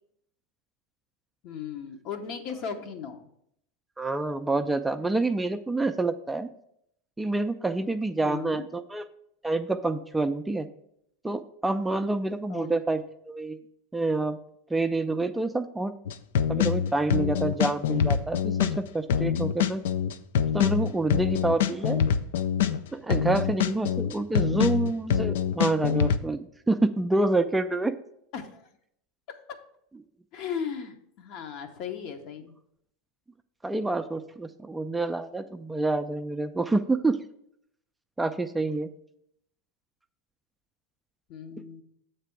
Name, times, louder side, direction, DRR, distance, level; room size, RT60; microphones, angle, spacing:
voice 1, 1.4-3.2 8.2-8.7 12.5-12.7 28.3-28.6 29.3-29.4 30.3-32.5 41.3-41.8, left 7 dB, 55° left, 6 dB, 0.8 m, -36 dB
voice 2, 4.0-6.5 7.2-9.0 9.4-10.7 11.2-13.6 13.9-14.4 14.7-15.9 16.5-19.8 20.5-22.0 22.9-28.0 33.6-37.2 38.2-38.9, right 2 dB, 10° right, 9 dB, 0.3 m, -27 dB
sound 1, 16.1-26.2, left 8 dB, 75° left, 0.3 m, -25 dB
7.4 x 3.3 x 5.7 m, 0.74 s
hypercardioid pair, 95°, 0 cm